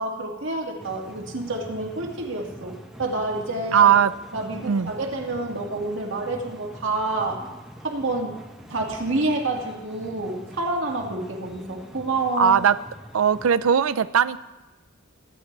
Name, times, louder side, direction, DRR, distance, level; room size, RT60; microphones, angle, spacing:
voice 1, 0.0-3.9 4.3-7.4 7.8-8.4 8.7-12.6, right 2 dB, 65° right, 0 dB, 2.1 m, -28 dB
sound 1, 0.8-13.5, equal, ahead, 1.2 m, -44 dB
voice 2, 3.7-4.1 4.6-4.9 12.4-12.8 13.1-14.4, right 8 dB, 90° right, 14 dB, 0.5 m, -18 dB
23.5 x 9.5 x 3.3 m, 1.1 s
head